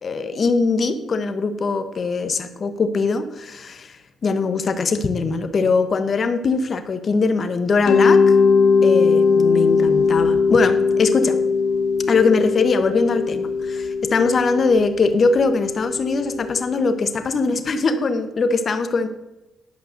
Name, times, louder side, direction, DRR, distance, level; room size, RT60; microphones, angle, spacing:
voice 1, 0.0-8.4 8.8-11.4 12.1-19.1, left 4 dB, 45° left, 9 dB, 1.2 m, -21 dB
Mallet percussion, 7.9-16.6, left 4 dB, 65° left, 1.1 m, -19 dB
11.5 x 5.6 x 6.6 m, 0.98 s
cardioid pair, 90°, 0 cm